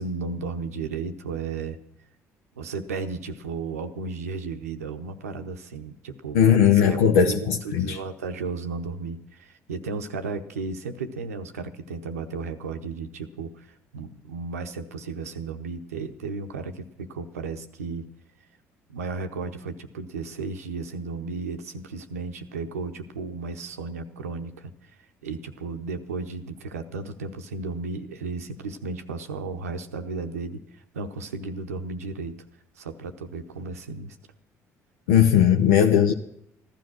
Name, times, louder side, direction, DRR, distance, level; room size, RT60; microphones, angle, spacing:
voice 1, 0.0-1.8 2.6-18.1 18.9-24.9 25.2-32.4 32.8-34.2, right 4 dB, 85° right, 0.8 m, -34 dB
voice 2, 6.3-8.0 35.1-36.1, left 8 dB, 80° left, 0.7 m, -18 dB
15.0 x 12.0 x 6.1 m
hypercardioid pair, 50°, 8 cm